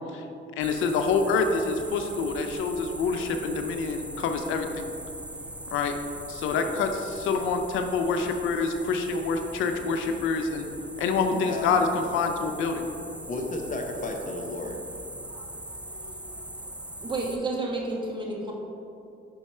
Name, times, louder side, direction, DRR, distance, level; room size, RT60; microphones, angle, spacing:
voice 1, 0.6-4.9 5.7-5.9 6.3-10.7 11.0-12.9, left 4 dB, 90° left, 6 dB, 0.5 m, -26 dB
sound 1, 0.6-17.4, right 1 dB, 5° right, 0.4 m, -41 dB
voice 2, 11.3-11.9 13.3-14.8, left 2 dB, 40° left, 2 dB, 0.8 m, -33 dB
voice 3, 15.8-16.1 17.0-18.5, right 2 dB, 25° right, -2 dB, 1.2 m, -31 dB
5.4 x 4.7 x 4.2 m, 2.7 s
cardioid pair, 90°, 20 cm